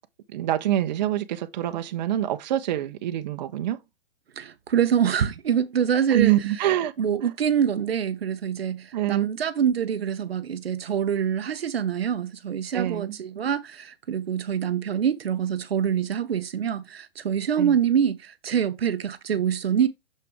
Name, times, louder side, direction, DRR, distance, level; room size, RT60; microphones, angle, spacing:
voice 1, 0.3-3.8 6.1-6.9 8.9-9.3 12.7-13.2 17.6-17.8, right 13 dB, 45° right, 0.9 m, -25 dB
voice 2, 4.4-6.3 7.0-19.9, right 8 dB, 80° right, 0.9 m, -25 dB
6.9 x 5.8 x 3.5 m
hypercardioid pair, 135°, 30 cm